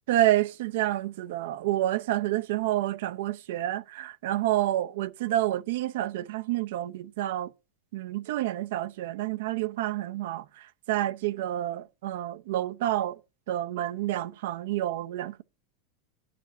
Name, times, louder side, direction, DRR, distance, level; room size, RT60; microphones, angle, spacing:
voice 1, 0.1-7.5 7.9-10.4 10.9-13.2 13.5-15.4, right 14 dB, 70° right, 0.7 m, -28 dB
10.5 x 5.1 x 6.5 m
supercardioid pair, 145°, 0 cm